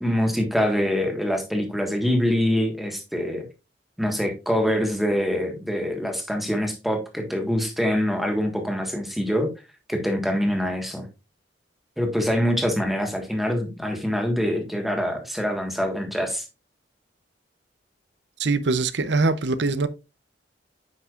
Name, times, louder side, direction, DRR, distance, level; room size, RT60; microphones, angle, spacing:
voice 1, 0.0-3.4 4.0-9.5 9.9-11.1 12.0-16.4, equal, ahead, 1.5 m, -24 dB
voice 2, 18.4-19.9, right 3 dB, 75° right, 0.7 m, -22 dB
9.3 x 5.8 x 2.4 m
head